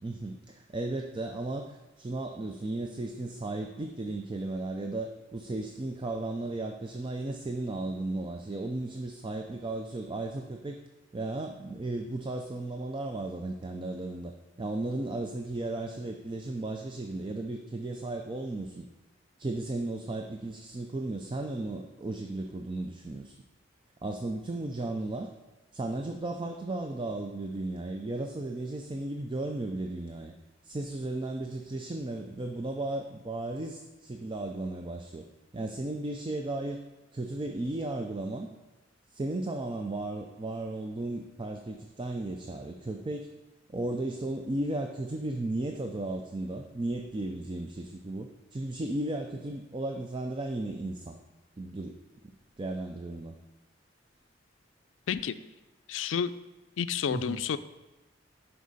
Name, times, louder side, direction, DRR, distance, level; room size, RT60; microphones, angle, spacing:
voice 1, 0.0-10.8 11.1-14.3 14.6-18.9 19.4-23.4 24.0-25.3 25.7-30.3 30.6-35.3 35.5-36.8 37.1-38.5 39.1-43.3 43.7-51.2 51.6-52.0 52.6-53.4 57.1-57.4, right 2 dB, 25° right, 4 dB, 0.4 m, -35 dB
voice 2, 55.9-56.3 56.8-57.6, left 7 dB, 80° left, 13 dB, 0.4 m, -30 dB
11.0 x 4.6 x 4.0 m, 1.1 s
head